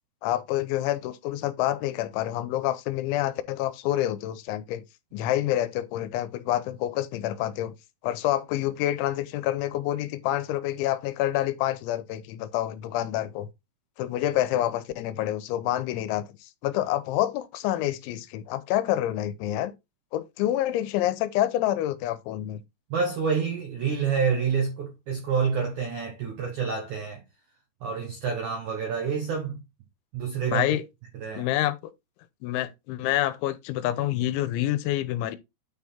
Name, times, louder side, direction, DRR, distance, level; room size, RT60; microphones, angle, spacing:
voice 1, 0.2-4.8 5.1-7.7 8.0-13.5 14.0-19.7 20.1-22.6 30.5-30.8 31.4-31.8 32.4-35.4, left 13 dB, 90° left, 3.1 m, -27 dB
voice 2, 22.9-27.2 27.8-29.6 30.1-30.7 31.2-31.5, right 6 dB, 75° right, 1.7 m, -28 dB
9.4 x 3.5 x 4.3 m
omnidirectional pair, 5.3 m